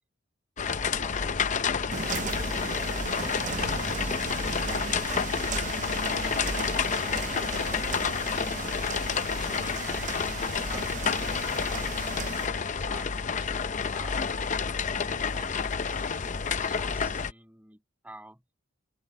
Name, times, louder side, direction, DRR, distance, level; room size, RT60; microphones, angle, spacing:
sound 1, 0.6-17.3, left 6 dB, 40° left, 0.6 m, -29 dB
voice 1, 0.8-2.8 3.2-4.9 6.2-8.7 9.6-13.5 13.9-18.4, right 1 dB, 10° right, 7.8 m, -50 dB
sound 2, 1.9-12.5, right 5 dB, 40° right, 0.6 m, -36 dB
open air
head